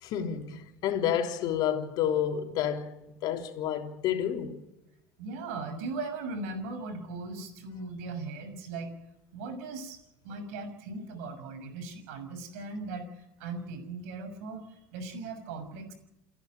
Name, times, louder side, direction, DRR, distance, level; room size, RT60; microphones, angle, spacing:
voice 1, 0.0-4.6, left 9 dB, 55° left, 3.4 m, -30 dB
voice 2, 5.2-8.9 9.3-10.0 10.2-14.6 14.9-15.9, right 3 dB, 70° right, 6.4 m, -38 dB
28.5 x 11.0 x 8.9 m
hypercardioid pair, 85°, 8 cm